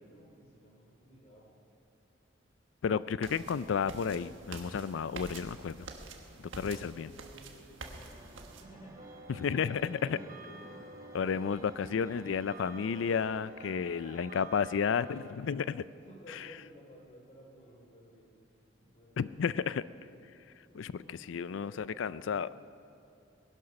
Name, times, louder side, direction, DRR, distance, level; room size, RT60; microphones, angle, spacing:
voice 1, 0.0-1.6 6.6-9.0 9.8-10.8 13.4-14.2 16.0-18.4 18.8-19.6 20.7-22.5, right 1 dB, 35° left, -1 dB, 3.0 m, -55 dB
voice 2, 2.8-5.9 6.4-7.1 9.4-10.2 11.1-15.9 16.3-16.4 19.2-19.8 20.7-22.5, left 6 dB, 80° left, 17 dB, 0.4 m, -32 dB
sound 1, 3.2-8.6, right 3 dB, 85° right, 1.4 m, -47 dB
sound 2, 7.9-13.9, right 1 dB, 15° right, 1.2 m, -55 dB
sound 3, 9.0-15.3, right 3 dB, 45° right, 1.2 m, -51 dB
19.0 x 11.5 x 5.9 m, 2.7 s
head